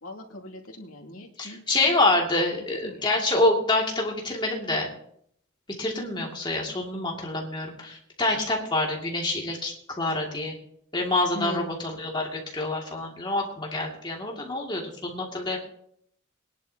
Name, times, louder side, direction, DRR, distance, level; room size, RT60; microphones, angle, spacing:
voice 1, 0.0-1.6 2.5-3.2 11.3-11.7, left 1 dB, 90° left, 1 dB, 2.6 m, -39 dB
voice 2, 1.4-4.9 5.8-10.5 10.9-15.6, left 2 dB, 20° left, -1 dB, 2.4 m, -26 dB
22.0 x 10.5 x 2.9 m, 0.67 s
head